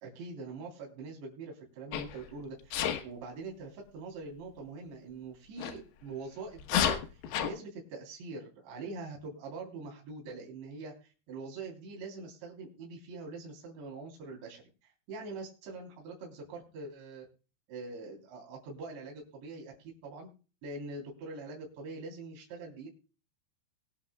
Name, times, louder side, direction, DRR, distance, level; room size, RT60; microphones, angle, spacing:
voice 1, 0.0-7.0 7.4-10.9 11.3-14.7 15.1-17.3 17.7-19.7 20.0-20.3 20.6-22.9, right 3 dB, 65° right, -1 dB, 5.6 m, -43 dB
Sneeze, 1.9-2.2 2.7-3.0 5.6-5.7 6.6-7.5, left 9 dB, 70° left, 2.7 m, -30 dB
23.5 x 8.6 x 2.3 m, 0.35 s
omnidirectional pair, 5.6 m